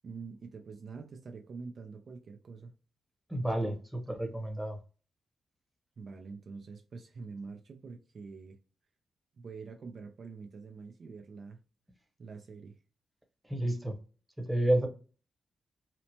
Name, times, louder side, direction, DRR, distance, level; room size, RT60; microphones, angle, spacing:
voice 1, 0.0-2.7 6.0-8.6 9.4-11.6 12.2-12.7, right 4 dB, 60° right, 0.4 m, -45 dB
voice 2, 3.3-4.8 13.5-13.9 14.4-14.9, right 1 dB, 10° right, 0.9 m, -30 dB
2.8 x 2.1 x 2.8 m
supercardioid pair, 45°, 0 cm